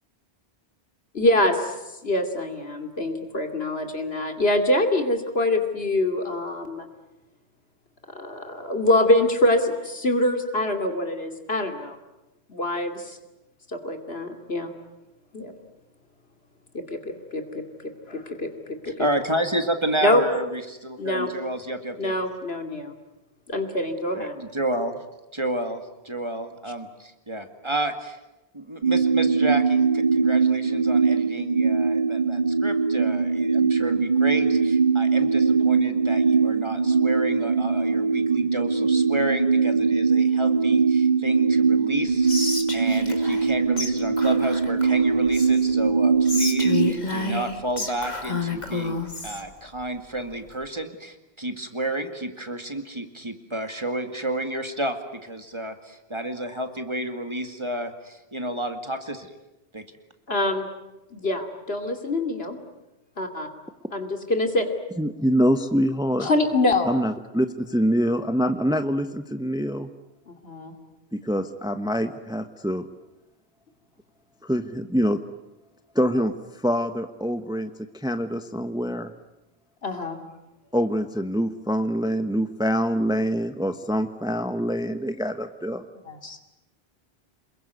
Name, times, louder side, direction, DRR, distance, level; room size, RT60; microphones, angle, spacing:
voice 1, 1.1-1.7 2.0-6.9 8.1-12.0 12.5-13.2 13.7-14.7 15.3-15.5 16.7-17.6 18.1-18.3 19.0-19.1 20.0-20.2 21.0-21.3 22.0-22.9 23.5-24.3 60.3-60.7 61.1-62.6 63.2-63.5 63.9-64.7 66.2-66.9 70.3-70.7 79.8-80.2 86.1-86.4, left 1 dB, 75° left, 5 dB, 2.9 m, -24 dB
voice 2, 19.0-22.1 24.1-25.0 25.3-28.2 28.5-42.3 42.7-59.3 59.7-59.8, right 1 dB, 30° right, 6 dB, 2.3 m, -31 dB
sound 1, 28.8-46.9, right 5 dB, 45° right, 1.7 m, -21 dB
Whispering, 42.3-43.5 43.8-43.9 44.2-45.7 46.2-49.4, left 3 dB, 45° left, 2.7 m, -30 dB
voice 3, 65.0-66.3 66.9-69.9 71.2-72.8 74.4-75.2 75.9-76.3 76.6-77.7 78.0-79.1 80.7-85.8, equal, 5° right, 9 dB, 1.0 m, -25 dB
28.0 x 21.5 x 9.5 m, 0.98 s
omnidirectional pair, 1.0 m